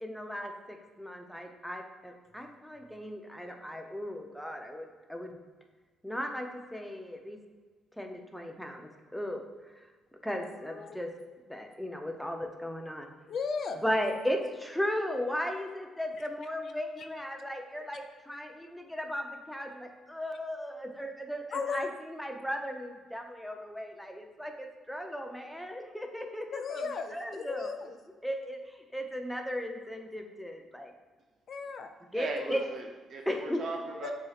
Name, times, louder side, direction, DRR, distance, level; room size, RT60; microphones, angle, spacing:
voice 1, 0.0-5.3 6.0-7.4 8.0-9.4 9.8-9.9 10.1-11.1 11.5-13.1 13.8-27.7 28.2-30.9 32.1-32.6 33.3-33.6, equal, 5° left, 3 dB, 0.5 m, -36 dB
voice 2, 10.3-11.0 13.3-13.8 17.0-17.1 21.5-21.9 26.5-28.0 31.5-31.9 32.3-32.6 34.0-34.1, left 5 dB, 60° left, 7 dB, 0.4 m, -36 dB
voice 3, 32.1-34.1, right 3 dB, 60° right, 2 dB, 0.6 m, -38 dB
7.3 x 2.8 x 2.4 m, 1.4 s
cardioid pair, 90°, 0 cm